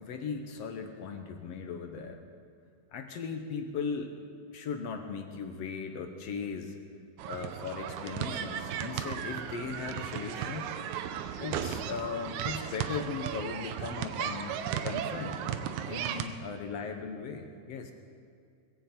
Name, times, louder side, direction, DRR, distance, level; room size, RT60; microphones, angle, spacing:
voice 1, 0.0-2.2 2.9-4.2 4.5-6.8 7.3-10.7 11.4-15.5 15.9-17.9, left 5 dB, 65° left, 5 dB, 1.7 m, -38 dB
sound 1, 7.2-16.3, right 9 dB, 75° right, 2.0 m, -35 dB
20.5 x 16.0 x 4.4 m, 2.3 s
omnidirectional pair, 3.8 m